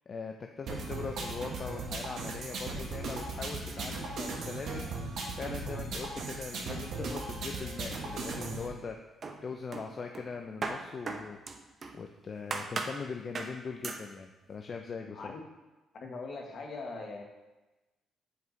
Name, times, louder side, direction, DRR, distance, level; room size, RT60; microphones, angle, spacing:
voice 1, 0.1-4.9 5.4-9.0 9.4-11.4 11.9-15.3, left 5 dB, 45° left, 4 dB, 0.5 m, -41 dB
sound 1, 0.7-8.7, right 3 dB, 70° right, 1.3 m, -37 dB
sound 2, 8.1-8.9 9.2-12.0 12.5-13.0 13.3-13.6 13.8-14.1, right 4 dB, 45° right, 0.6 m, -38 dB
voice 2, 15.9-17.2, left 3 dB, 60° left, 1 dB, 1.2 m, -41 dB
7.7 x 5.2 x 3.1 m, 1.1 s
cardioid pair, 90°, 0 cm